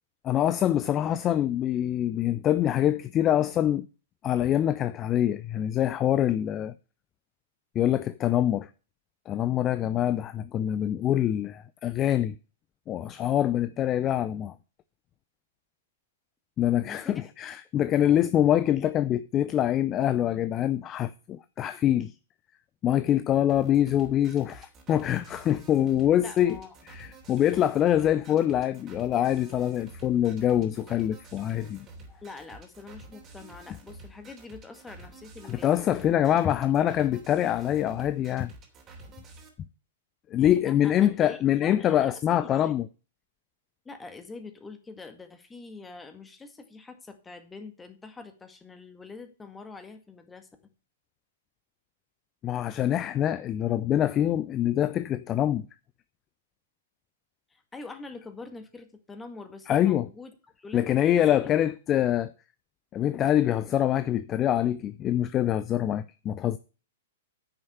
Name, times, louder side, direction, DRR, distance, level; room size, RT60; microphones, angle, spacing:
voice 1, 0.2-3.9 4.2-6.7 7.7-8.7 9.3-12.4 12.9-14.5 16.6-22.1 22.8-26.6 26.9-31.9 35.5-38.5 40.3-42.9 52.4-55.7 59.7-60.1 60.7-62.3 62.9-66.6, left 11 dB, 25° left, 0.5 m, -25 dB
voice 2, 16.8-17.3 26.2-26.8 27.9-28.1 32.2-35.7 36.7-36.8 40.5-42.7 43.9-50.5 57.5-61.5, left 3 dB, 10° left, 1.9 m, -44 dB
sound 1, 23.5-39.5, right 2 dB, 25° right, 3.0 m, -49 dB
10.0 x 6.5 x 6.7 m
figure-of-eight pair, 105°, 0 cm